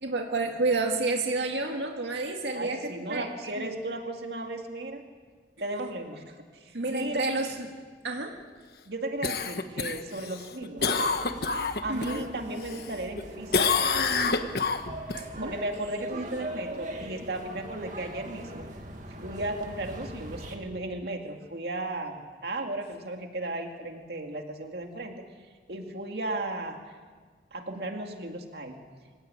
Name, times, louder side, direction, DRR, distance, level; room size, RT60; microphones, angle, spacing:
voice 1, 0.0-3.3 3.6-3.8 6.7-7.7 8.0-8.4 11.9-12.2 15.4-15.5, right 3 dB, 80° right, 2 dB, 2.1 m, -29 dB
voice 2, 2.5-5.0 5.6-7.2 8.9-10.9 11.8-13.6 15.4-18.7 19.1-25.2 25.7-26.8 27.5-28.8, right 2 dB, 65° right, 3 dB, 2.3 m, -35 dB
Cough, 9.2-12.2 12.6-13.2 13.5-15.2 19.6-19.7, left 4 dB, 60° left, 1.3 m, -27 dB
sound 1, 10.8-20.6, right 1 dB, 45° right, 2.2 m, -41 dB
25.0 x 17.0 x 9.0 m, 1.5 s
head